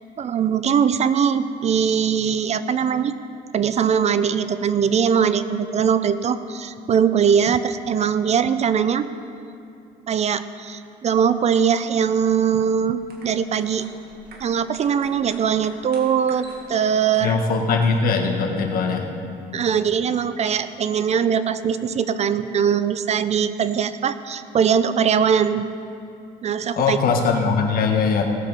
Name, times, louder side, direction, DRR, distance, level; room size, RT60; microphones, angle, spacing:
voice 1, 0.2-3.1 3.5-9.1 10.1-13.8 14.4-17.4 19.5-25.7 26.4-27.0, right 7 dB, 40° right, 13 dB, 0.5 m, -21 dB
sound 1, 12.8-18.2, right 3 dB, 70° right, 2.1 m, -47 dB
voice 2, 17.2-19.1 26.8-28.2, left 5 dB, 60° left, 3 dB, 1.6 m, -21 dB
17.5 x 7.6 x 5.6 m, 2.6 s
cardioid pair, 110°, 17 cm